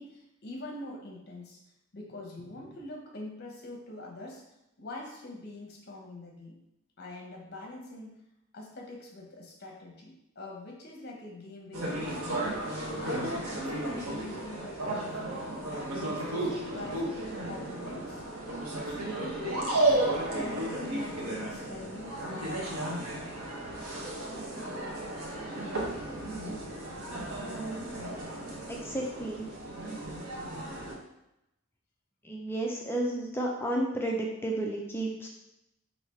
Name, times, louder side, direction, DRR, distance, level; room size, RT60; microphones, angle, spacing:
voice 1, 0.0-1.6 1.9-4.4 4.8-6.6 7.0-8.2 8.5-12.5 13.0-18.2 18.7-20.0 20.3-23.4, left 2 dB, 45° left, 0 dB, 0.8 m, -43 dB
sound 1, 11.7-30.9, right 2 dB, 85° right, 0.9 m, -34 dB
voice 2, 27.3-27.9 28.7-29.5 32.2-35.3, right 1 dB, 10° left, -1 dB, 0.3 m, -32 dB
3.3 x 2.7 x 4.4 m, 0.87 s
head